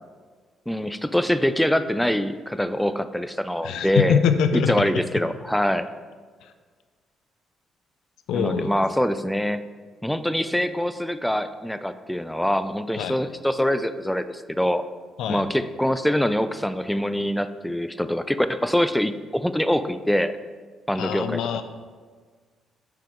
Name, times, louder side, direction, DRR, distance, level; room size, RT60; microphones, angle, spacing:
voice 1, 0.7-4.2 4.5-5.9 8.3-9.6 10.0-14.8 15.3-20.3 20.9-21.4, equal, 5° left, 11 dB, 0.3 m, -24 dB
voice 2, 3.6-4.9 6.4-6.5 8.3-8.7 13.0-13.2 15.2-15.4 21.0-21.6, left 7 dB, 85° left, 9 dB, 0.4 m, -24 dB
5.9 x 5.0 x 3.6 m, 1.5 s
cardioid pair, 90°, 0 cm